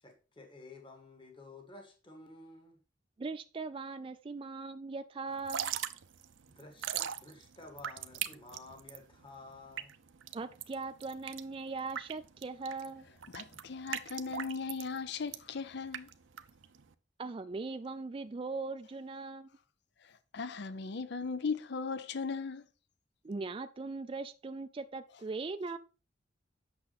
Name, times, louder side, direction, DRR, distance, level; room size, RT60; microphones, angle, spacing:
voice 1, 0.0-2.8 6.5-9.9, left 2 dB, 25° left, 1.7 m, -52 dB
voice 2, 3.2-5.8 10.3-13.1 17.2-19.5 23.2-25.8, right 3 dB, 30° right, 0.4 m, -40 dB
Drip / Trickle dribble, 5.3-16.9, right 9 dB, 85° right, 0.7 m, -41 dB
voice 3, 13.3-16.1 20.0-22.6, left 5 dB, 60° left, 0.6 m, -38 dB
8.6 x 6.3 x 4.1 m
head